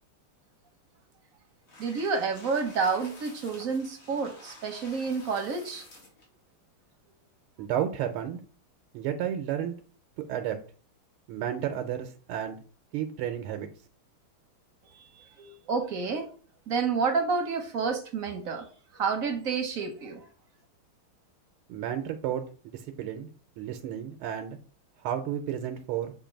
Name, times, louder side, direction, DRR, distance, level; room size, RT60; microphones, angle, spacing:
sound 1, 1.7-6.3, left 2 dB, 70° left, 3.2 m, -50 dB
voice 1, 1.8-5.9 14.9-16.3 16.7-18.7 18.9-20.3, right 5 dB, 60° right, 0.9 m, -29 dB
voice 2, 7.6-8.4 8.9-9.8 10.3-10.6 11.3-12.6 12.9-13.7 21.7-23.3 23.6-24.6 25.0-26.1, right 10 dB, 85° right, 1.6 m, -32 dB
7.5 x 2.6 x 5.1 m
omnidirectional pair, 2.3 m